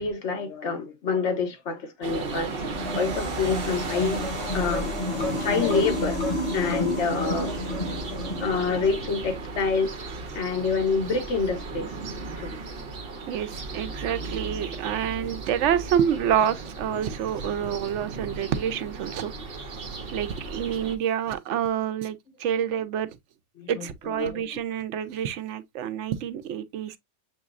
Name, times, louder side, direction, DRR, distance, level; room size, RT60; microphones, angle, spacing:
voice 1, 0.0-6.3 6.5-7.6 8.1-9.9 10.3-11.9 12.4-12.6 23.6-23.9 24.2-24.4, left 5 dB, 70° left, 1.2 m, -27 dB
sound 1, 2.0-21.0, right 3 dB, 55° right, 1.0 m, -35 dB
sound 2, 2.7-9.0, left 1 dB, 40° left, 1.8 m, -31 dB
voice 2, 13.3-19.3 20.1-23.1 23.7-27.0, right 9 dB, 75° right, 0.9 m, -28 dB
6.8 x 3.0 x 2.4 m
omnidirectional pair, 1.3 m